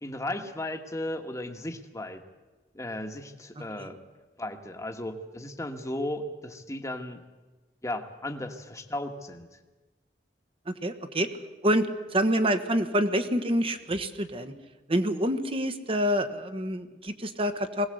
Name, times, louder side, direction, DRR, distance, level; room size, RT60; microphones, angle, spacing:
voice 1, 0.0-2.2 2.7-4.0 4.4-7.2 7.8-9.5, left 1 dB, 20° left, 5 dB, 1.5 m, -35 dB
voice 2, 3.6-3.9 10.7-11.3 11.6-14.5 14.9-17.9, equal, 35° right, 9 dB, 1.3 m, -27 dB
21.0 x 18.0 x 7.9 m, 1.2 s
head